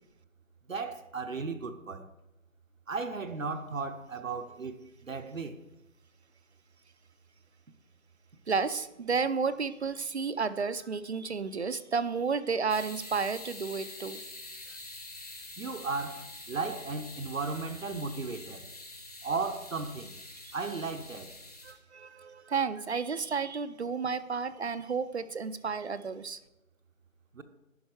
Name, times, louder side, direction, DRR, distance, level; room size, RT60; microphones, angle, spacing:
voice 1, 0.7-2.1 2.9-5.6 15.6-18.7 19.2-20.1 20.5-21.3 27.3-27.4, right 4 dB, 70° right, 1.0 m, -35 dB
voice 2, 8.5-14.2 21.6-26.4, right 5 dB, 55° right, 0.5 m, -32 dB
sound 1, 12.7-21.7, left 2 dB, 30° left, 0.8 m, -46 dB
11.0 x 4.6 x 4.7 m
figure-of-eight pair, 160°, 41 cm